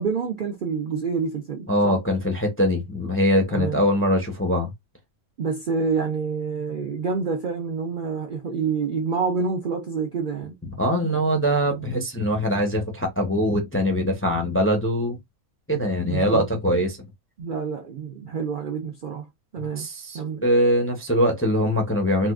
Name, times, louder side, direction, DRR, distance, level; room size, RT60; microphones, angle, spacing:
voice 1, 0.0-2.0 3.5-3.9 5.4-10.5 16.1-16.4 17.4-19.3 19.5-19.9 20.1-20.5, right 5 dB, 55° right, 0.5 m, -27 dB
voice 2, 1.7-4.7 10.8-15.2 15.7-17.0 19.6-22.3, equal, 15° left, 0.5 m, -22 dB
4.1 x 2.3 x 2.4 m
omnidirectional pair, 1.5 m